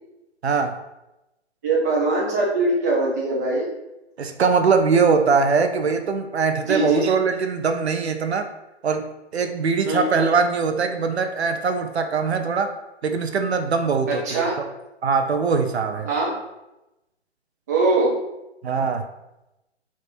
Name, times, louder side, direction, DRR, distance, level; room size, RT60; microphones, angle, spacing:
voice 1, 0.4-0.8 4.2-8.5 8.8-12.7 13.0-14.5 15.0-16.1 18.6-19.0, right 5 dB, 65° right, 6 dB, 0.5 m, -22 dB
voice 2, 1.6-3.7 6.7-7.0 9.9-10.2 14.1-14.6 16.0-16.4 17.7-18.1, right 2 dB, 15° right, -4 dB, 0.4 m, -22 dB
3.4 x 2.5 x 4.2 m, 0.95 s
figure-of-eight pair, 130°, 34 cm